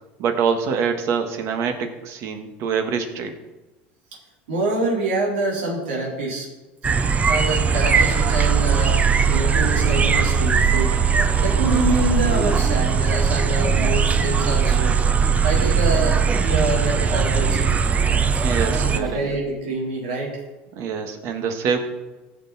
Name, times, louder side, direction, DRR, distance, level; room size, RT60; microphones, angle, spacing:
voice 1, 0.2-3.3 18.4-19.2 20.7-21.8, right 6 dB, 55° right, 6 dB, 1.7 m, -25 dB
voice 2, 4.5-6.5 7.3-9.0 9.3-11.0 11.4-14.9 15.4-17.7 18.3-18.4 18.7-20.4, right 2 dB, 90° right, -3 dB, 3.9 m, -26 dB
sound 1, 6.8-19.0, right 6 dB, 25° right, 0.8 m, -19 dB
sound 2, 12.0-13.0 15.0-15.1 16.2-16.3 17.8-17.9 18.5-18.6 18.9-19.4, equal, ahead, 1.1 m, -36 dB
16.0 x 6.4 x 4.2 m, 1.1 s
supercardioid pair, 100°, 6 cm